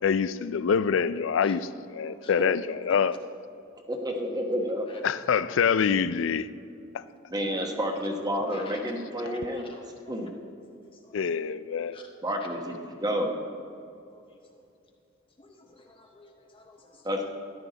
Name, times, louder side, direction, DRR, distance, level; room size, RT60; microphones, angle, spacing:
voice 1, 0.0-3.2 5.0-6.5 6.9-7.0 9.3-9.4 11.1-12.0, left 6 dB, 70° left, 0.4 m, -26 dB
voice 2, 3.9-4.9 7.3-9.8 10.1-10.3 12.2-13.3 17.0-17.3, equal, 20° right, 1.1 m, -30 dB
voice 3, 9.7-10.2 10.9-11.2 11.9-12.1 14.1-14.6 15.4-17.1, left 3 dB, 25° left, 0.7 m, -53 dB
13.5 x 10.5 x 4.0 m
head